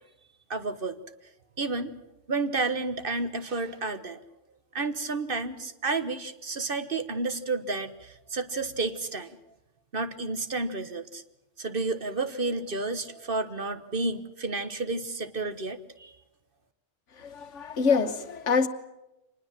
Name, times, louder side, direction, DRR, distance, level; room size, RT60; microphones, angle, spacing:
voice 1, 0.5-1.0 1.6-2.0 2.3-4.2 4.7-9.4 9.9-11.2 11.6-16.1, right 3 dB, 50° right, 1.4 m, -31 dB
voice 2, 17.2-18.7, left 5 dB, 70° left, 1.6 m, -25 dB
25.5 x 20.0 x 7.5 m
omnidirectional pair, 1.3 m